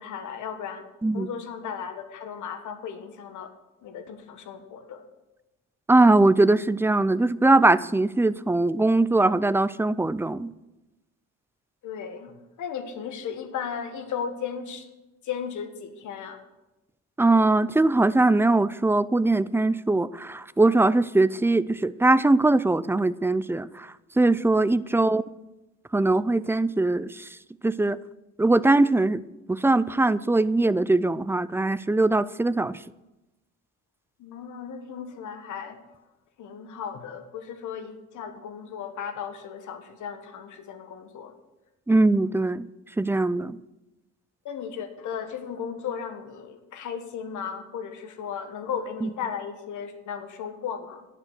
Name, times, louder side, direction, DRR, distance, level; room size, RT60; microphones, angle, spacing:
voice 1, 0.0-0.8 1.1-3.5 3.8-5.0 11.8-12.3 12.6-14.9 15.2-16.4 24.9-25.1 34.2-35.8 36.4-41.3 44.4-51.1, left 7 dB, 80° left, 8 dB, 1.6 m, -35 dB
voice 2, 5.9-10.5 17.2-25.2 25.9-27.3 27.6-28.0 28.4-32.7 41.9-42.7 43.0-43.6 49.0-49.1, right 2 dB, 10° right, 17 dB, 0.4 m, -21 dB
11.0 x 7.6 x 8.0 m, 1.0 s
cardioid pair, 90°, 30 cm